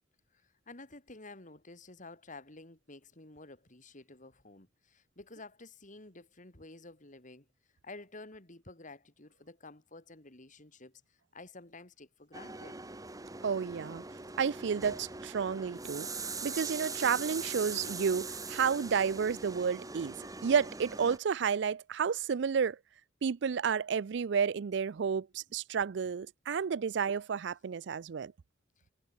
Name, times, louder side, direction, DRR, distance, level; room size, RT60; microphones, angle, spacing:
voice 1, 0.3-7.5 7.8-12.8 28.8-28.9, left 2 dB, 45° left, 3.5 m, -51 dB
sound 1, 12.3-21.2, right 4 dB, 20° right, 1.7 m, -41 dB
voice 2, 13.4-14.0 14.4-16.1 16.4-20.1 20.4-22.8 23.2-28.3, right 6 dB, 65° right, 0.4 m, -31 dB
head